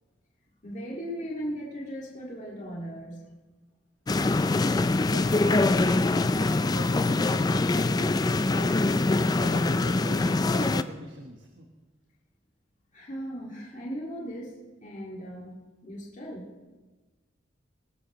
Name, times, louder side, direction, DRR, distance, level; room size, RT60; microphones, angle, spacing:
voice 1, 0.6-3.3 12.9-15.6 15.8-16.5, equal, 40° left, -4 dB, 2.0 m, -37 dB
sound 1, 4.1-10.8, left 2 dB, 20° left, 0.3 m, -24 dB
voice 2, 5.0-8.8 9.2-11.7, right 2 dB, 70° right, 2 dB, 1.2 m, -41 dB
20.0 x 12.0 x 3.1 m, 1.3 s
head